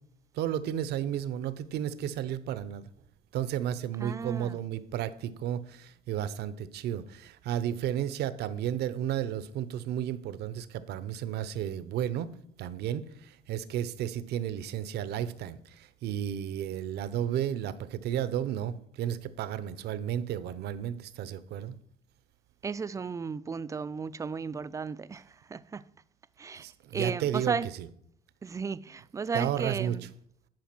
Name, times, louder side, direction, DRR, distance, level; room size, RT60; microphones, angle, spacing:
voice 1, 0.3-2.8 3.3-12.3 12.6-21.7 26.5-27.9 29.3-30.0, right 10 dB, 75° right, 0.7 m, -33 dB
voice 2, 4.0-4.6 22.6-25.8 26.4-26.7 26.9-27.7 28.4-30.1, right 5 dB, 20° right, 0.3 m, -34 dB
10.5 x 4.8 x 6.0 m
cardioid pair, 110°, 17 cm